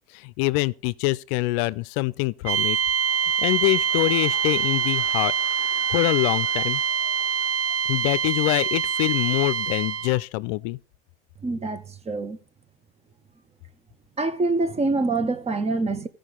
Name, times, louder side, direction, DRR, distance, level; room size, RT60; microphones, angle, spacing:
voice 1, 0.1-2.8 3.4-5.3 5.9-6.8 7.9-10.8, left 20 dB, 70° left, 0.5 m, -24 dB
sound 1, 2.5-10.2, right 6 dB, 50° right, 0.8 m, -25 dB
sound 2, 2.5-8.5 8.9-9.2, right 5 dB, 70° right, 2.3 m, -47 dB
voice 2, 11.4-12.4 14.2-16.1, right 3 dB, 20° right, 0.8 m, -25 dB
15.0 x 5.1 x 3.8 m
supercardioid pair, 100°, 31 cm